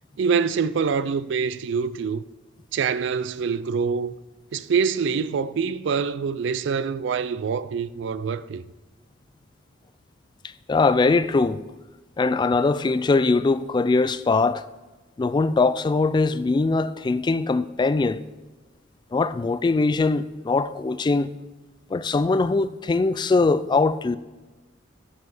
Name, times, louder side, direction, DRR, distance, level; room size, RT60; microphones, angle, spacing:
voice 1, 0.2-2.2 2.7-4.1 4.5-8.6, right 6 dB, 65° right, 0.4 m, -25 dB
voice 2, 10.7-11.6 12.2-14.6 15.2-18.2 19.1-21.3 21.9-24.2, left 3 dB, 25° left, 0.3 m, -21 dB
9.4 x 5.5 x 6.0 m
head